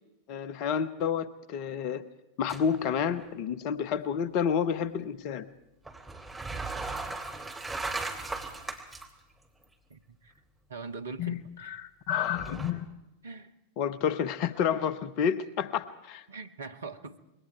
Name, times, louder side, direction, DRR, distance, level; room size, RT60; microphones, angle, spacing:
voice 1, 0.3-2.1 2.4-5.5 11.2-12.9 13.8-16.3, left 7 dB, 45° left, 16 dB, 1.0 m, -30 dB
sound 1, 2.5-2.9 3.2-3.3 5.8-9.1 9.6-9.7 12.1-12.7, right 3 dB, 5° right, 2.9 m, -37 dB
voice 2, 9.9-10.3 10.7-11.8 13.2-13.5 16.3-17.2, right 4 dB, 70° right, 8 dB, 1.6 m, -42 dB
26.5 x 22.5 x 4.7 m, 0.96 s
figure-of-eight pair, 90°, 0 cm